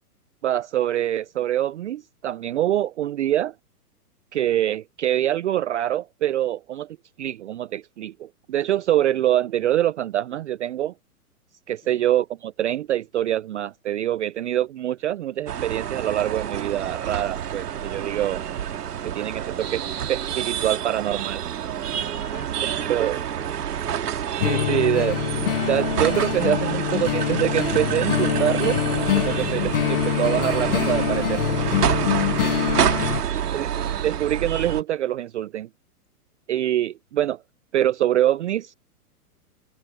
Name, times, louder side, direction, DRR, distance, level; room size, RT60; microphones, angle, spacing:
voice 1, 0.4-3.5 4.3-10.9 11.7-18.4 19.0-21.4 22.6-23.2 24.4-25.2 25.7-28.8 29.1-31.7 33.5-33.7 34.0-35.7 36.5-37.4 37.7-38.8, right 12 dB, 50° right, 0.5 m, -25 dB
voice 2, 11.8-12.1 22.2-24.2 33.3-33.8, left 12 dB, 20° left, 2.7 m, -49 dB
sound 1, 15.5-34.8, right 9 dB, 75° right, 2.2 m, -28 dB
sound 2, 24.4-33.2, left 13 dB, 35° left, 0.7 m, -25 dB
hypercardioid pair, 155°, 47 cm